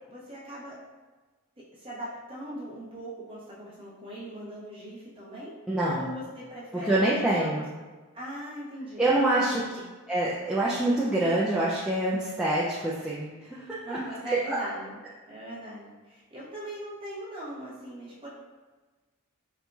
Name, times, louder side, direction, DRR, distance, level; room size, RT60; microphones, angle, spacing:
voice 1, 0.1-0.7 1.7-5.5 6.0-7.6 8.1-9.9 13.8-15.0 15.3-18.3, right 1 dB, 25° right, -8 dB, 1.0 m, -40 dB
voice 2, 5.7-6.1 6.8-7.7 9.0-9.6 10.1-14.0 14.3-14.6, right 1 dB, 5° right, -8 dB, 0.3 m, -26 dB
4.3 x 2.7 x 2.3 m, 1.3 s
head